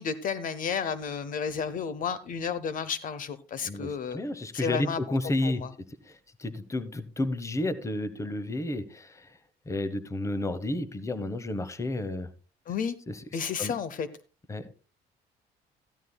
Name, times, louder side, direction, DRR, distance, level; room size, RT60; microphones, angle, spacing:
voice 1, 0.0-4.2 4.5-5.2 5.4-5.7 12.7-13.0 13.3-14.1, left 6 dB, 55° left, 15 dB, 0.8 m, -32 dB
voice 2, 3.6-5.6 6.0-9.4 9.7-12.3 13.1-13.2 13.6-13.7 14.5-14.7, left 2 dB, 15° left, 15 dB, 1.0 m, -31 dB
14.0 x 13.0 x 2.3 m, 0.32 s
cardioid pair, 110°, 17 cm